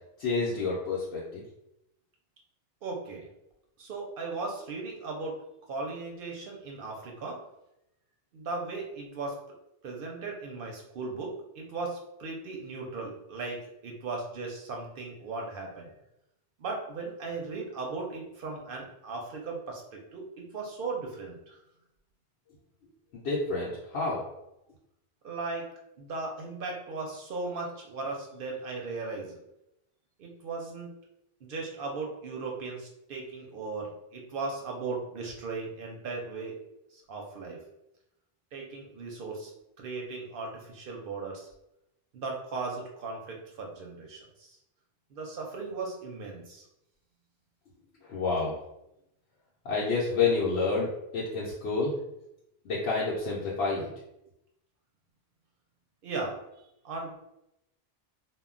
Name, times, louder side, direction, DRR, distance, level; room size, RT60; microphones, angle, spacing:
voice 1, 0.2-1.4 23.1-24.2 48.0-48.6 49.6-52.0 52.6-53.9, left 4 dB, 80° left, -6 dB, 0.9 m, -29 dB
voice 2, 2.8-3.3 3.8-5.4 5.7-7.4 8.3-9.4 9.8-15.9 16.6-21.6 25.2-25.7 26.0-29.4 30.2-30.9 31.4-36.6 36.9-37.6 38.5-39.5 39.8-41.5 42.1-44.6 45.1-46.7 56.0-56.4 56.8-57.2, right 3 dB, 65° right, 0 dB, 0.7 m, -37 dB
2.1 x 2.1 x 3.6 m, 0.85 s
omnidirectional pair, 1.1 m